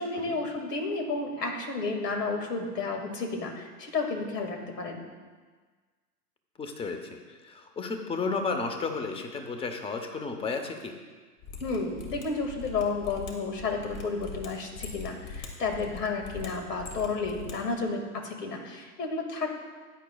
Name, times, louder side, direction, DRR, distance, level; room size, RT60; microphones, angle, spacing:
voice 1, 0.0-5.0 11.6-19.5, left 3 dB, 90° left, 2 dB, 2.2 m, -32 dB
voice 2, 6.6-7.2 7.4-10.9, left 4 dB, 10° left, 6 dB, 0.8 m, -33 dB
Mechanisms, 11.4-17.5 17.8-17.9, left 4 dB, 55° left, 2.2 m, -42 dB
15.5 x 9.6 x 2.3 m, 1.4 s
hypercardioid pair, 120°, 47 cm